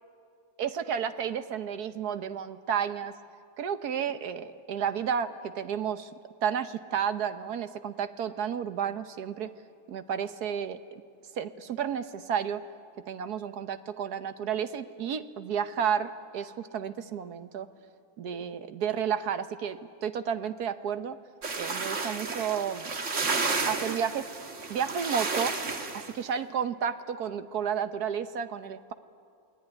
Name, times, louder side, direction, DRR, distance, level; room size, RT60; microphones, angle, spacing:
voice 1, 0.6-3.1 3.6-6.1 6.4-9.5 9.9-11.0 11.4-12.6 13.1-17.7 18.2-21.2 21.6-22.9 23.7-24.3 24.7-25.5 25.9-28.9, right 8 dB, 90° right, 10 dB, 1.6 m, -32 dB
sound 1, 21.4-26.1, right 4 dB, 50° right, 2.0 m, -32 dB
28.5 x 19.0 x 9.9 m, 2.3 s
omnidirectional pair, 1.6 m